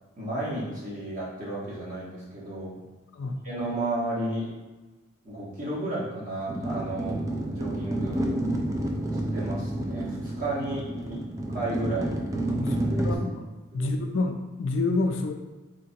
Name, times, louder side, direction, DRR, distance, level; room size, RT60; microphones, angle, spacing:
voice 1, 0.2-2.8 3.4-4.5 5.2-7.2 7.5-8.3 9.3-11.2 11.5-12.2 12.5-13.1 13.7-13.9, right 1 dB, 40° right, -7 dB, 1.3 m, -33 dB
sound 1, 6.5-13.2, right 1 dB, 15° right, 0.3 m, -29 dB
voice 2, 12.5-13.5 13.7-15.3, left 3 dB, 65° left, 4 dB, 0.4 m, -28 dB
3.7 x 3.4 x 2.8 m, 1.2 s
head